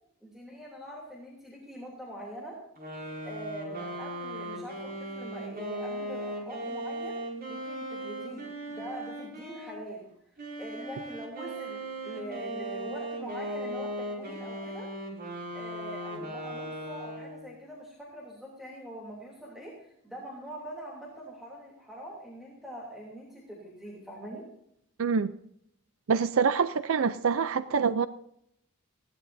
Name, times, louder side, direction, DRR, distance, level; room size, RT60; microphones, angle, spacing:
voice 1, 0.2-2.6 3.2-7.2 7.5-10.1 10.6-14.9 15.5-24.4, right 1 dB, ahead, 2.9 m, -43 dB
sound 1, 2.8-9.8 10.4-17.5, right 1 dB, 45° right, 5.6 m, -38 dB
voice 2, 25.0-25.3 26.1-28.1, right 6 dB, 65° right, 0.5 m, -25 dB
20.0 x 16.0 x 2.7 m
head